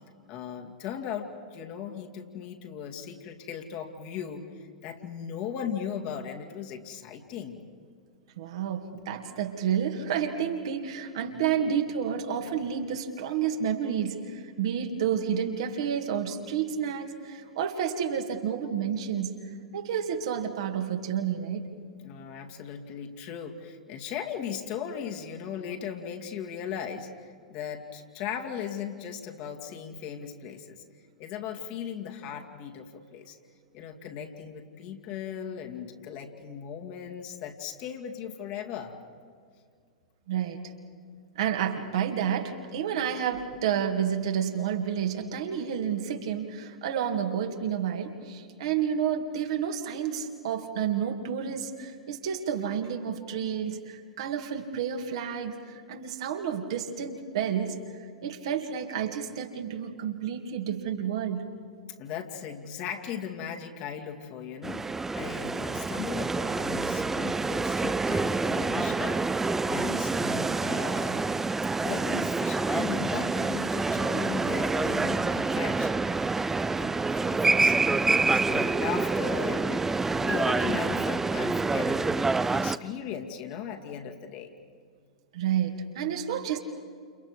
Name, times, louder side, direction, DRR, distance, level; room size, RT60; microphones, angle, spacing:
voice 1, 0.3-7.6 22.0-30.8 31.2-33.4 33.7-38.9 62.0-71.2 71.8-79.9 80.2-84.5, left 8 dB, 45° left, 3 dB, 2.4 m, -38 dB
voice 2, 8.4-19.4 19.7-21.7 40.3-40.6 41.4-57.8 58.2-61.5 85.3-86.6, right 8 dB, 60° right, 3 dB, 2.3 m, -30 dB
sound 1, 64.6-82.8, right 3 dB, 10° right, 0.6 m, -27 dB
30.0 x 29.0 x 4.9 m, 2.1 s
figure-of-eight pair, 95°, 3 cm